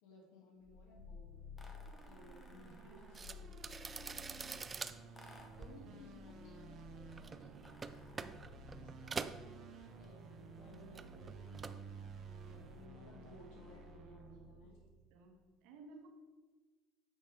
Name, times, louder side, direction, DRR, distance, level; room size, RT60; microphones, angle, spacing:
voice 1, 0.0-8.1 8.8-14.8, left 2 dB, 90° left, -1 dB, 2.3 m, -60 dB
sound 1, 0.6-15.2, right 2 dB, 45° right, 1.1 m, -53 dB
sound 2, 1.6-3.5 5.1-5.7 7.5-8.6, left 1 dB, 15° left, 1.1 m, -61 dB
sound 3, 3.1-10.4 10.6-11.9 12.2-12.6, right 4 dB, 20° right, 0.3 m, -47 dB
voice 2, 14.6-16.1, right 3 dB, 75° right, 3 dB, 1.5 m, -58 dB
9.7 x 6.4 x 3.5 m, 1.4 s
cardioid pair, 140°, 0 cm